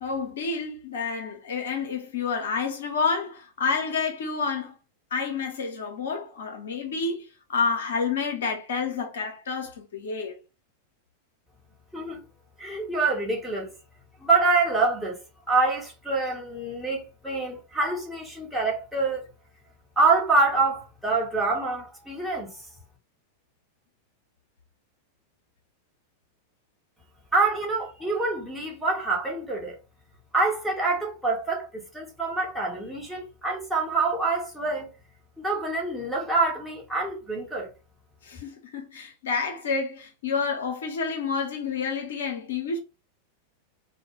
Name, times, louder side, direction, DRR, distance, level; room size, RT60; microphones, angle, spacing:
voice 1, 0.0-4.7 5.1-10.4 38.2-42.8, left 5 dB, 60° left, 0.6 m, -29 dB
voice 2, 12.6-13.7 14.2-15.2 15.5-19.2 20.0-22.5 27.3-29.8 30.3-31.7 31.9-34.9 35.4-37.7, right 3 dB, 5° right, 0.8 m, -26 dB
2.2 x 2.1 x 2.8 m
figure-of-eight pair, 90°, 0 cm